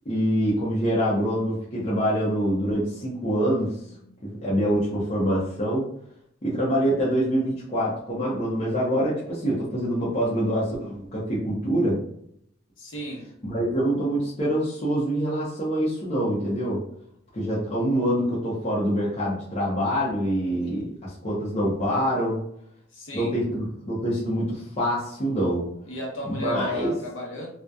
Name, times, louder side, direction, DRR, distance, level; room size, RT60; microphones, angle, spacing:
voice 1, 0.1-3.7 4.2-5.9 6.4-12.0 13.4-16.8 17.3-22.4 23.1-25.7 26.3-26.9, equal, 35° left, -7 dB, 0.6 m, -25 dB
voice 2, 12.8-13.3 22.9-23.3 25.9-27.5, left 1 dB, 85° left, -1 dB, 0.8 m, -34 dB
2.6 x 2.1 x 2.3 m, 0.70 s
head